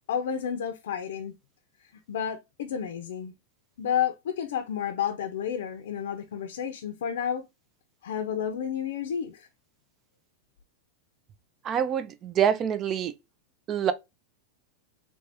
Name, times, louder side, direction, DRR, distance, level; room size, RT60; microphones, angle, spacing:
voice 1, 0.1-1.3 2.1-3.3 3.8-7.5 8.0-9.5, left 8 dB, 80° left, 0.5 m, -31 dB
voice 2, 11.6-13.1 13.7-13.9, right 9 dB, 30° right, 0.4 m, -26 dB
3.3 x 2.6 x 3.3 m
supercardioid pair, 135°, 0 cm